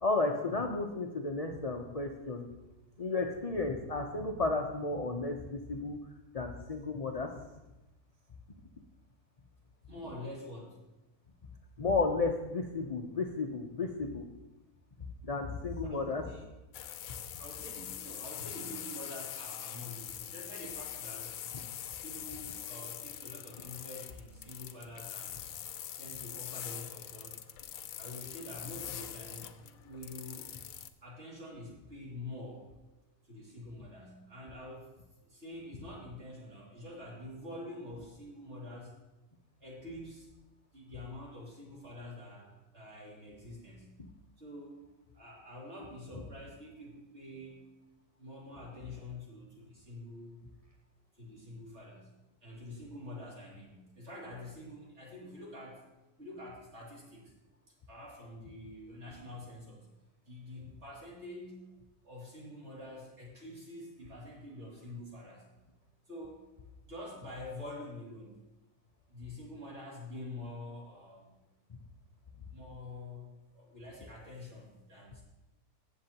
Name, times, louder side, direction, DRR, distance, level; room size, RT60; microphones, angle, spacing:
voice 1, 0.0-2.5 3.0-6.0 6.3-7.3 11.8-14.2 15.2-16.2, left 3 dB, 45° left, 2 dB, 0.5 m, -33 dB
voice 2, 9.9-10.8 15.8-16.4 17.4-21.3 22.0-25.5 26.0-27.4 28.0-30.5 31.0-32.7 33.2-34.9 35.2-39.0 39.6-40.3 40.7-44.0 44.4-44.9 45.1-47.6 48.2-50.4 51.1-52.1 52.4-55.8 56.2-57.3 57.9-59.9 60.3-61.7 62.0-65.5 66.1-66.4 66.8-68.3 69.1-71.4 72.5-73.3 73.5-75.2, left 1 dB, 45° right, -4 dB, 3.0 m, -46 dB
sound 1, 16.7-30.9, left 10 dB, 70° left, 1.0 m, -43 dB
16.0 x 7.1 x 2.9 m, 1.0 s
omnidirectional pair, 1.6 m